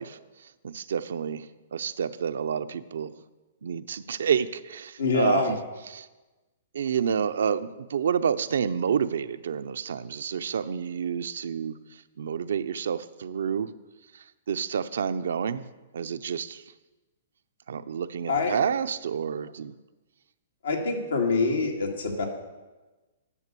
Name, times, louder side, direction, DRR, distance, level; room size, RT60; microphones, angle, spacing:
voice 1, 0.0-3.1 3.6-5.6 5.9-6.1 6.7-13.7 14.1-15.7 15.9-16.6 17.7-19.7, right 7 dB, 75° right, 12 dB, 0.5 m, -29 dB
voice 2, 5.0-5.5 18.3-18.6 20.6-22.3, left 3 dB, 85° left, 2 dB, 2.3 m, -25 dB
11.0 x 6.7 x 6.7 m, 1.2 s
hypercardioid pair, 140°, 0 cm